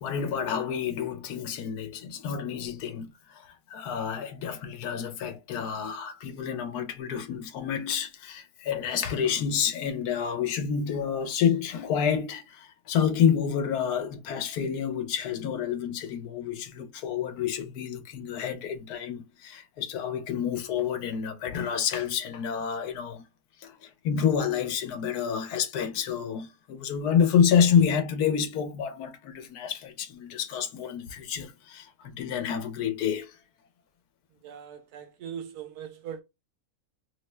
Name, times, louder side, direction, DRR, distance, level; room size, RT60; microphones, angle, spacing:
voice 1, 0.0-23.2 23.6-33.4, left 7 dB, 85° left, 1.2 m, -28 dB
voice 2, 34.4-36.2, right 8 dB, 90° right, 1.2 m, -40 dB
3.2 x 2.1 x 3.2 m
omnidirectional pair, 1.6 m